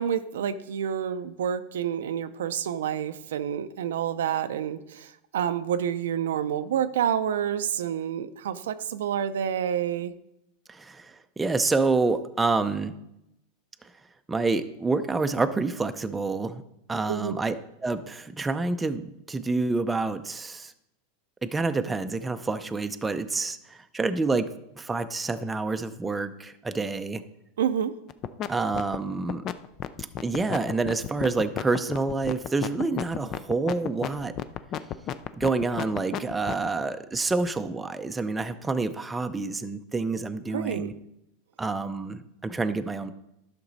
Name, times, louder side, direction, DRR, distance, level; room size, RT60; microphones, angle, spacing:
voice 1, 0.0-10.1 17.1-17.4 27.6-28.0 40.5-40.9, right 9 dB, 90° right, 11 dB, 0.5 m, -28 dB
voice 2, 10.7-12.9 14.3-16.6 16.9-17.5 17.8-19.0 19.3-20.7 21.4-24.5 24.8-27.2 28.5-29.4 30.2-34.3 35.4-40.9 41.6-43.1, right 3 dB, 10° right, 9 dB, 0.5 m, -28 dB
sound 1, 28.1-28.5 28.7-36.7, left 10 dB, 35° left, 0.4 m, -31 dB
11.5 x 6.0 x 4.0 m, 0.84 s
supercardioid pair, 130°, 0 cm